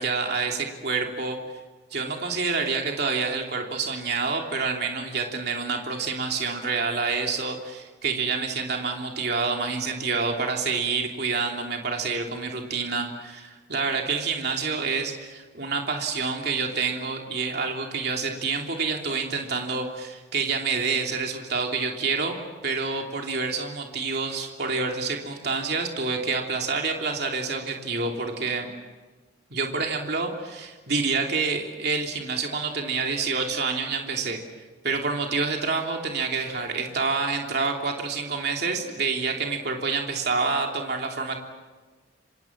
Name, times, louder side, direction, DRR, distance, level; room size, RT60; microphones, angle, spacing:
voice 1, 0.0-1.4 1.9-22.3 22.6-28.7 29.5-34.4 34.8-41.4, right 4 dB, 55° right, 2 dB, 3.1 m, -28 dB
28.0 x 25.5 x 7.4 m, 1.3 s
head